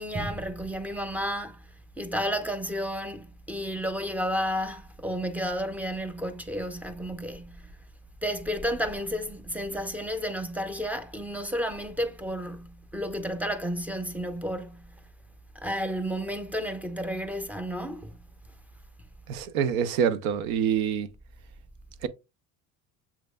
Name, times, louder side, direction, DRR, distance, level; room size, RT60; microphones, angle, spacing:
voice 1, 0.0-1.6 2.0-7.7 8.2-14.9 15.6-18.2, equal, 5° right, 0.5 m, -32 dB
voice 2, 19.3-21.1 22.0-22.1, right 8 dB, 85° right, 0.7 m, -26 dB
7.2 x 3.3 x 2.2 m
supercardioid pair, 100°, 41 cm